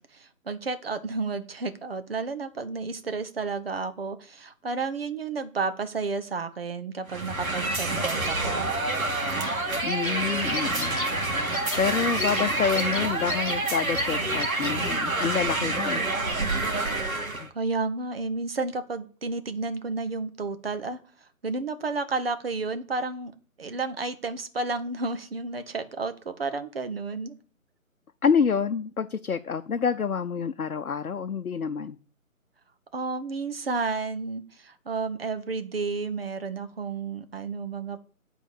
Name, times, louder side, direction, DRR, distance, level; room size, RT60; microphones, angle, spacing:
voice 1, 0.1-8.7 17.5-21.0 21.4-23.3 23.6-27.3 32.9-38.0, right 4 dB, 45° right, 9 dB, 1.0 m, -31 dB
sound 1, 7.1-17.5, right 2 dB, 75° right, 2.1 m, -27 dB
sound 2, 9.3-9.6 9.9-10.2 10.5-11.1 11.5-11.8 12.2-12.5 12.7-13.6 13.9-14.0 14.4-14.7, left 4 dB, 35° left, 1.7 m, -34 dB
voice 2, 9.8-11.0 11.8-16.0 17.4-17.5 28.2-32.0, left 6 dB, 80° left, 7 dB, 0.7 m, -27 dB
9.1 x 4.0 x 7.0 m, 0.41 s
figure-of-eight pair, 155°, 43 cm